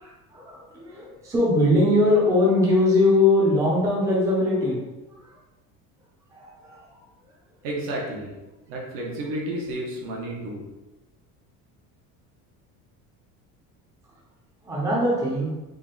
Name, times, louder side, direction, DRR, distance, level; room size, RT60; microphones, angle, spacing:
voice 1, 0.0-4.8 6.3-6.8 14.6-15.5, left 2 dB, 10° right, -6 dB, 0.6 m, -21 dB
voice 2, 7.6-8.3 8.7-10.6, right 1 dB, 65° right, -1 dB, 1.0 m, -31 dB
3.7 x 2.3 x 3.8 m, 1.1 s
cardioid pair, 170°, 35 cm